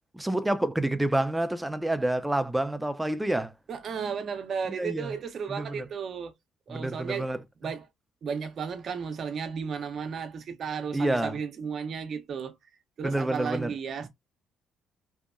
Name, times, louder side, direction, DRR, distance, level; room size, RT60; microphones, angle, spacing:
voice 1, 0.0-3.5 4.8-5.1 5.5-5.9 6.7-7.4 10.9-11.4 13.0-13.7, right 1 dB, 10° right, 0.4 m, -28 dB
voice 2, 3.7-6.3 6.7-7.3 7.6-7.9 8.2-12.5 13.0-14.1, right 6 dB, 55° right, 0.6 m, -34 dB
2.7 x 2.1 x 2.3 m
cardioid pair, 85°, 0 cm